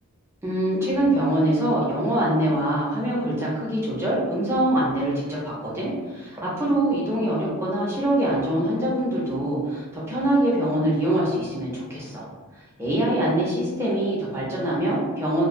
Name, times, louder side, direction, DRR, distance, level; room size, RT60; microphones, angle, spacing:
voice 1, 0.4-12.2 12.8-15.5, right 1 dB, 10° right, -7 dB, 0.5 m, -24 dB
2.2 x 2.2 x 2.5 m, 1.3 s
head